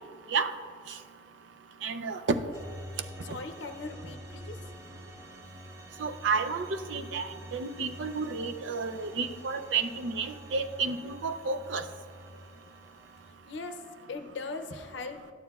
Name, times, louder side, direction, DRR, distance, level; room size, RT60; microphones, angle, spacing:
voice 1, 1.8-2.2 6.0-11.8, right 4 dB, 70° right, 8 dB, 0.5 m, -31 dB
sound 1, 2.5-13.3, equal, 15° right, 0.5 m, -47 dB
voice 2, 3.2-4.7 13.3-15.3, left 3 dB, 65° left, 7 dB, 0.6 m, -40 dB
12.0 x 9.3 x 2.3 m, 2.1 s
head